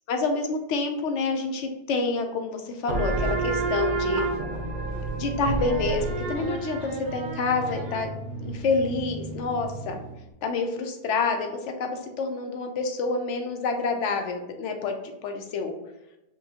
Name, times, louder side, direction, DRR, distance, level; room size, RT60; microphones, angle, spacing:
voice 1, 0.1-4.3 5.2-8.1 8.4-10.0 10.4-15.0 15.2-15.7, left 3 dB, 80° left, 4 dB, 0.9 m, -28 dB
sound 1, 2.9-10.2, right 3 dB, 85° right, 1.0 m, -30 dB
5.5 x 2.2 x 2.7 m, 0.95 s
omnidirectional pair, 1.2 m